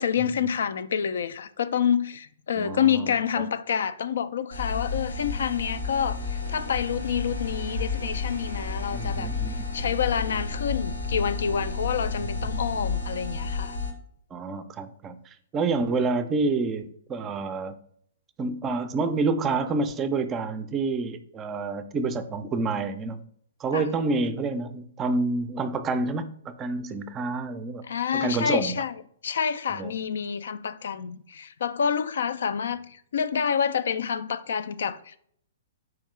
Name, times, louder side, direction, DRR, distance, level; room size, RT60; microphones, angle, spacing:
voice 1, 0.0-13.8 23.7-23.9 27.9-28.9 29.2-35.2, left 7 dB, 60° left, 0.3 m, -28 dB
voice 2, 2.6-3.1 8.9-9.9 12.4-12.6 14.3-17.8 18.4-23.2 23.6-27.8 28.1-28.7 29.7-29.9, right 3 dB, 20° right, 0.4 m, -28 dB
sound 1, 4.5-13.9, left 4 dB, 90° left, 0.9 m, -31 dB
4.8 x 3.5 x 3.1 m
figure-of-eight pair, 115°, 0 cm